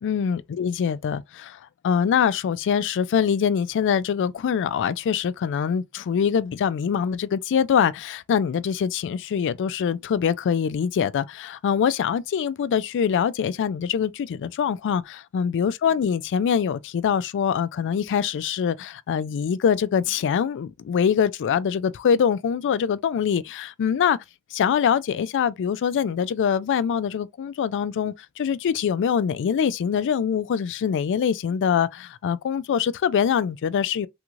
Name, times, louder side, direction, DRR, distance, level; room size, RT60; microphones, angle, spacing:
voice 1, 0.0-1.6 1.8-24.2 24.5-34.1, left 7 dB, 55° left, 0.3 m, -24 dB
3.4 x 3.0 x 2.4 m
head